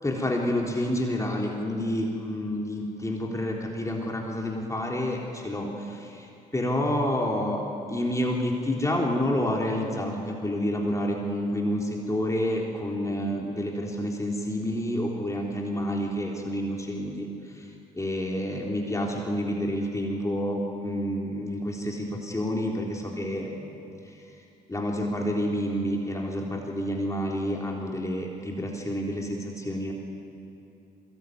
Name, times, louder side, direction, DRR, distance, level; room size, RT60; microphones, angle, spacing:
voice 1, 0.0-7.6 7.9-23.8 24.0-24.4 24.7-29.9, left 1 dB, 15° left, -1 dB, 3.7 m, -29 dB
23.0 x 20.5 x 9.5 m, 2.7 s
hypercardioid pair, 60°, 19 cm